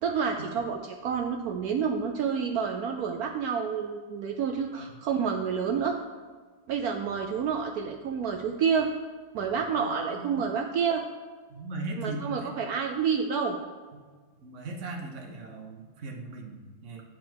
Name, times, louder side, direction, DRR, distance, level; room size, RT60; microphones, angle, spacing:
voice 1, 0.0-6.0 6.7-8.9 9.3-11.0 12.0-13.6, right 6 dB, 85° right, 3 dB, 0.8 m, -29 dB
voice 2, 9.8-10.5 11.5-12.5 14.4-17.0, right 2 dB, 45° right, 2 dB, 1.1 m, -39 dB
8.6 x 4.7 x 6.2 m, 1.4 s
omnidirectional pair, 2.2 m